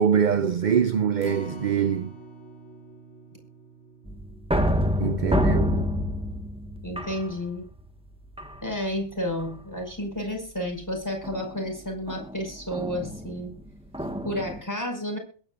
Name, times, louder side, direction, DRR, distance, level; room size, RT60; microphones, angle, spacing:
voice 1, 0.0-2.1 5.0-5.9, right 7 dB, 50° right, 0.7 m, -24 dB
Acoustic guitar, 1.2-7.5 7.9-8.0 8.4-8.5, left 1 dB, 65° left, 2.0 m, -46 dB
sound 1, 4.1-7.8 8.3-8.9 9.4-9.8 11.2-14.6, equal, 5° right, 1.4 m, -28 dB
voice 2, 5.2-5.6 6.8-7.6 8.6-13.5 14.2-15.2, left 1 dB, 15° left, 5.6 m, -31 dB
22.0 x 10.0 x 2.5 m
omnidirectional pair, 1.2 m